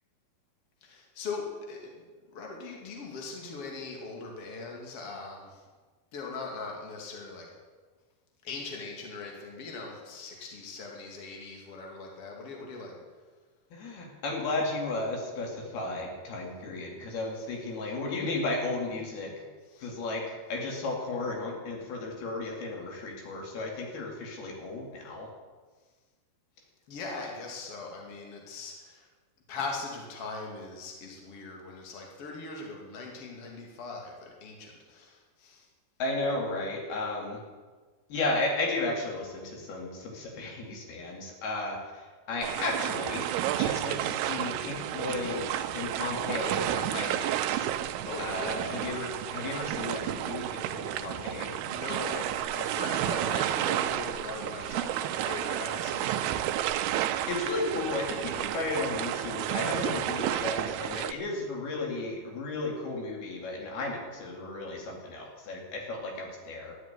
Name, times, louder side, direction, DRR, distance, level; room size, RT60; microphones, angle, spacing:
voice 1, 0.8-2.0 2.3-5.6 6.1-7.5 8.4-12.9 19.7-19.9 26.9-29.1 29.5-35.7 48.0-48.6 51.7-56.2, left 3 dB, 40° left, 0 dB, 3.3 m, -40 dB
voice 2, 13.7-19.4 19.8-25.3 36.0-37.4 38.1-47.7 48.2-51.5 57.3-66.7, left 2 dB, 80° left, 0 dB, 4.5 m, -34 dB
sound 1, 42.4-61.1, right 12 dB, 90° right, 2.7 m, -31 dB
13.0 x 11.5 x 9.5 m, 1.4 s
omnidirectional pair, 4.4 m